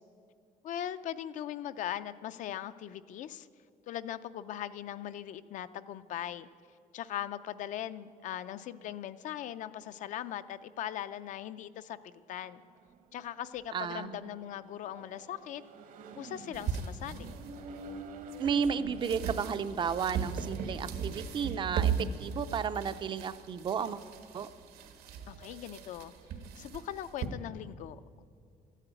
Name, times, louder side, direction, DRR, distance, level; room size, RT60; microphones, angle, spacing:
voice 1, 0.6-3.5 3.9-6.5 6.9-12.6 13.1-15.6 16.2-17.3 25.3-26.1 26.6-28.2, left 11 dB, 55° left, 13 dB, 0.4 m, -40 dB
Accelerating revving vroom, 12.6-23.0, right 2 dB, 60° right, 0.9 m, -50 dB
voice 2, 13.7-14.3 18.4-24.0 24.3-24.5, right 7 dB, 30° right, 12 dB, 0.4 m, -33 dB
sound 1, 16.5-27.3, right 7 dB, 85° right, 1.3 m, -38 dB
13.0 x 10.0 x 9.0 m, 2.2 s
cardioid pair, 180°, 15 cm